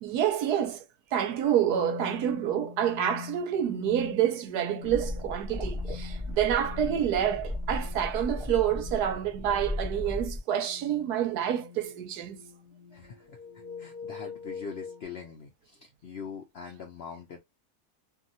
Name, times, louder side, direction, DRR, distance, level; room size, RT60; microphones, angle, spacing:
voice 1, 0.0-0.8 1.1-12.4, right 10 dB, 80° right, 1.2 m, -28 dB
sound 1, 1.4-15.0, left 7 dB, 30° left, 1.1 m, -45 dB
sound 2, 4.8-10.4, left 1 dB, 5° right, 0.7 m, -35 dB
voice 2, 12.9-17.4, left 6 dB, 65° left, 0.6 m, -43 dB
2.8 x 2.7 x 2.6 m
omnidirectional pair, 1.7 m